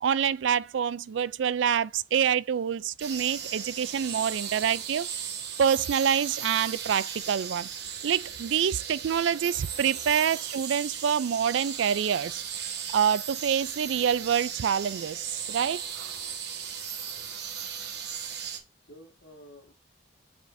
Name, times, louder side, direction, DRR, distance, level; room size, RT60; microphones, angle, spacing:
voice 1, 0.0-5.1 5.6-7.7 8.0-16.1, right 8 dB, 85° right, 0.4 m, -26 dB
sound 1, 3.0-18.6, right 7 dB, 60° right, 1.3 m, -37 dB
voice 2, 17.0-17.3 18.8-19.7, equal, 65° left, 1.7 m, -51 dB
9.1 x 5.0 x 2.6 m
head